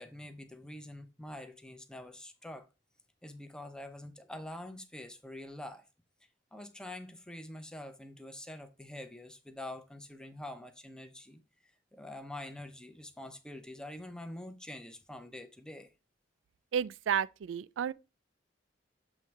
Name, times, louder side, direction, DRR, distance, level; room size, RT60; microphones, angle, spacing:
voice 1, 0.0-2.7 3.2-5.8 6.5-11.4 11.9-15.9, left 1 dB, 5° left, 0.6 m, -45 dB
voice 2, 16.7-17.9, right 8 dB, 85° right, 0.3 m, -31 dB
7.4 x 3.1 x 4.6 m
head